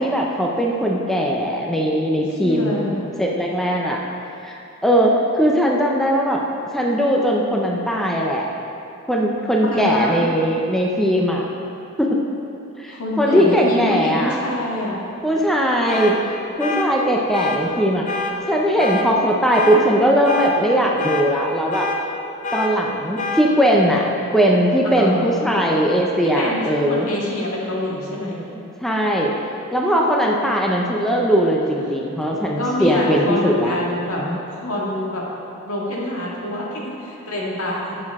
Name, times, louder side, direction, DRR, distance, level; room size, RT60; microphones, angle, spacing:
voice 1, 0.0-4.0 4.4-4.6 4.8-6.4 6.7-8.5 9.1-11.5 12.0-12.2 12.8-14.4 15.2-16.2 16.6-18.2 18.5-21.9 22.5-24.1 24.3-27.1 28.8-29.3 29.7-34.4, equal, ahead, -2 dB, 0.6 m, -19 dB
voice 2, 2.4-3.1 9.7-10.3 12.9-15.1 24.9-25.4 26.2-28.4 32.6-34.2 34.5-35.2 35.6-38.0, left 1 dB, 80° left, -4 dB, 1.9 m, -26 dB
sound 1, 15.9-16.1 16.6-16.9 17.3-17.6 18.1-18.3 18.8-19.1 19.5-19.8 20.2-20.5 21.0-21.2 21.7-22.0 22.4-22.7 23.2-23.4, left 3 dB, 35° left, 0.7 m, -25 dB
11.0 x 7.7 x 3.6 m, 2.7 s
head